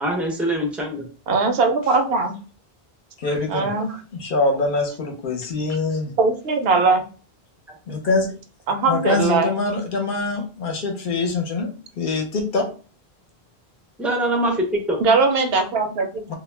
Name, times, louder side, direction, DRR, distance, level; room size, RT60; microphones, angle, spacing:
voice 1, 0.0-1.0 7.7-7.8 14.0-15.0, right 1 dB, ahead, 1 dB, 0.3 m, -23 dB
voice 2, 1.3-2.3 3.5-3.9 6.2-7.0 8.7-9.5 15.0-16.3, right 4 dB, 75° right, 5 dB, 0.8 m, -20 dB
voice 3, 3.2-3.7 4.1-6.1 7.9-8.3 8.9-11.7 12.0-12.7 16.3-16.4, left 3 dB, 60° left, 2 dB, 0.7 m, -24 dB
2.2 x 2.1 x 3.2 m, 0.36 s
omnidirectional pair, 1.0 m